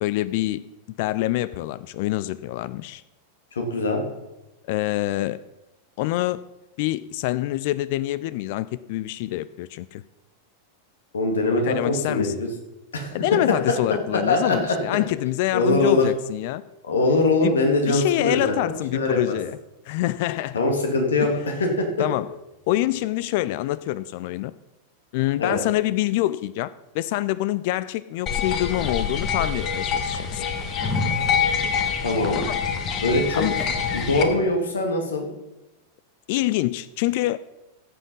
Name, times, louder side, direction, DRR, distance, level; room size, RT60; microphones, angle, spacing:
voice 1, 0.0-0.7 1.0-3.0 4.7-5.4 6.0-6.4 6.8-10.0 11.5-12.3 13.1-16.6 17.4-17.6 17.9-19.6 19.9-20.6 21.2-21.3 22.0-22.3 22.7-24.5 25.1-30.4 32.4-32.6 33.3-33.6 36.3-37.4, left 16 dB, 50° left, 0.4 m, -26 dB
voice 2, 3.6-4.0 11.1-12.5 12.9-13.1 14.3-14.8 15.5-16.1 16.9-19.4 20.5-21.9 25.4-25.6 32.0-32.4 33.0-33.5 33.9-35.2, left 2 dB, 70° left, 2.3 m, -22 dB
sound 1, 28.3-34.2, left 6 dB, 35° left, 1.5 m, -25 dB
15.0 x 7.4 x 5.4 m
figure-of-eight pair, 90°, 0 cm